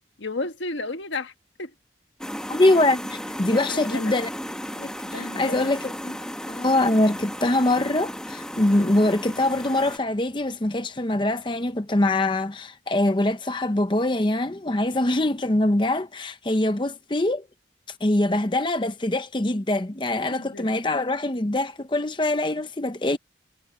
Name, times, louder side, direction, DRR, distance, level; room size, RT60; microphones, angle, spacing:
voice 1, 0.2-1.3 1.6-1.7 3.5-4.2 5.0-5.7 20.3-20.7, left 3 dB, 80° left, 1.6 m, -33 dB
sound 1, 2.2-10.0, equal, 5° left, 1.4 m, -35 dB
voice 2, 2.5-4.3 4.7-6.2 6.5-17.5 18.0-23.2, left 1 dB, 25° left, 0.8 m, -23 dB
head